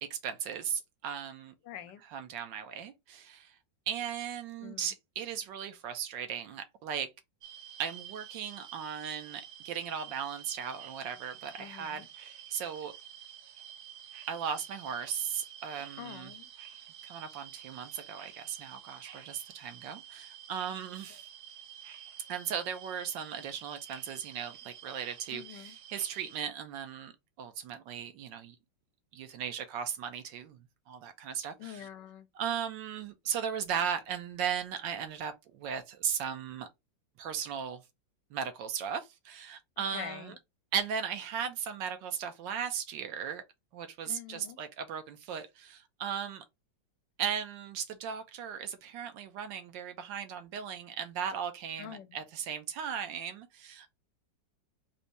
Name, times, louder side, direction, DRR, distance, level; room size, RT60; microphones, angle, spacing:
voice 1, 0.0-1.5 2.1-3.6 3.9-7.1 7.8-12.9 14.3-16.3 17.0-21.3 22.3-27.1 27.4-28.6 29.1-31.9 32.3-36.7 37.2-37.8 38.3-40.3 40.7-43.4 43.7-46.4 47.2-53.9, right 8 dB, 85° right, 1.4 m, -37 dB
voice 2, 1.6-2.0 4.6-4.9 11.6-12.1 16.0-16.5 25.3-25.7 31.6-32.3 39.8-40.4 44.0-44.6 51.8-52.2, left 10 dB, 75° left, 1.2 m, -45 dB
sound 1, 7.4-26.4, right 10 dB, 65° right, 1.1 m, -50 dB
4.1 x 2.6 x 3.1 m
omnidirectional pair, 2.0 m